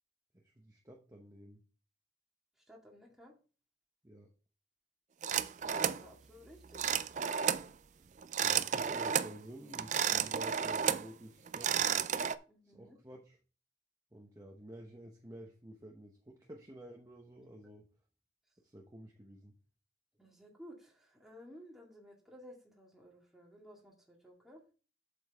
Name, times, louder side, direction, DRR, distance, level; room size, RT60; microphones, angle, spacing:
voice 1, 0.3-1.6 4.0-4.3 8.0-8.1 8.4-11.9 12.6-13.4 14.1-17.8 18.6-19.5, right 1 dB, 20° right, 1 dB, 0.9 m, -51 dB
voice 2, 2.6-3.3 5.7-7.0 12.5-13.0 20.2-24.6, equal, ahead, -2 dB, 2.0 m, -56 dB
sound 1, 5.2-6.0 6.7-7.7 8.2-9.3 9.7-11.1 11.5-12.3, right 8 dB, 40° right, 0.4 m, -32 dB
8.0 x 6.9 x 3.5 m, 0.37 s
head